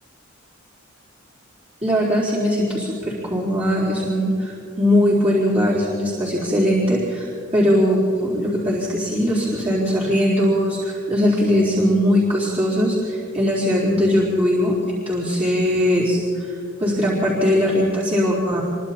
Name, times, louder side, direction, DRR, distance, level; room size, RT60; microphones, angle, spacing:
voice 1, 1.8-18.6, equal, 30° right, -8 dB, 4.2 m, -20 dB
26.0 x 24.0 x 4.3 m, 2.5 s
head